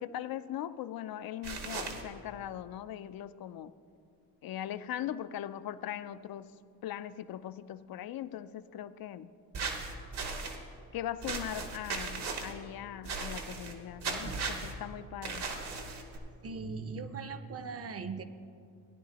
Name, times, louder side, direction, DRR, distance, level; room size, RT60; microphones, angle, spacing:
voice 1, 0.0-3.7 4.4-6.5 6.8-9.3 10.9-15.5, left 11 dB, 60° left, 14 dB, 0.5 m, -40 dB
sound 1, 1.4-2.0 9.5-10.6 11.2-12.5 13.0-13.7 14.0-14.7 15.2-16.2, right 4 dB, 70° right, 1.5 m, -37 dB
voice 2, 16.4-18.2, right 4 dB, 35° right, 11 dB, 0.6 m, -39 dB
17.0 x 10.0 x 2.9 m, 2.4 s
cardioid pair, 90°, 41 cm